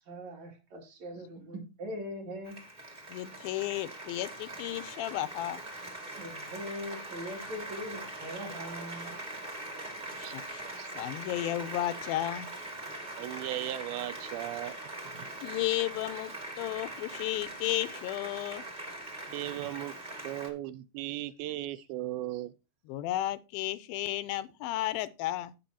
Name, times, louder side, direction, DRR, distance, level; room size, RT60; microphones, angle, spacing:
voice 1, 0.1-2.6 6.2-9.1, equal, 50° right, 3.5 m, -41 dB
Applause, 2.4-20.5, right 1 dB, 15° right, 1.5 m, -42 dB
voice 2, 3.1-5.6 10.2-10.6 11.0-12.5 15.4-16.3 16.6-18.6 22.9-25.5, left 15 dB, 85° left, 2.4 m, -33 dB
voice 3, 13.2-14.8 15.0-15.3 19.3-20.0 20.2-22.5, right 15 dB, 90° right, 2.5 m, -37 dB
16.5 x 5.6 x 2.8 m
omnidirectional pair, 4.2 m